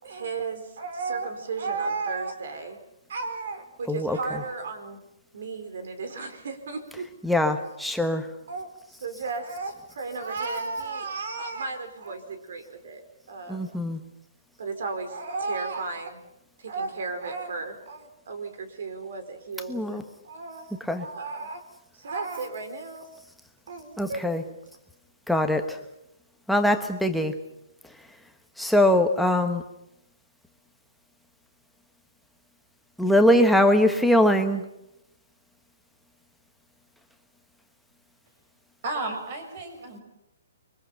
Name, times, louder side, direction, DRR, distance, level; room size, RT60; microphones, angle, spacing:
voice 1, 0.0-2.8 3.1-5.0 5.3-7.1 8.5-8.7 9.0-13.8 14.6-16.2 16.6-20.7 21.0-21.6 21.9-23.1 23.7-24.3, right 4 dB, 65° right, 9 dB, 4.7 m, -34 dB
voice 2, 7.2-8.3 13.5-14.0 19.7-20.0 20.9-21.0 24.0-24.4 25.3-25.8 26.5-27.3 28.6-29.6 33.0-34.6, left 1 dB, ahead, 5 dB, 1.3 m, -22 dB
voice 3, 38.8-40.0, right 2 dB, 40° right, 6 dB, 6.6 m, -33 dB
29.5 x 23.5 x 5.8 m, 0.84 s
hypercardioid pair, 165°, 0 cm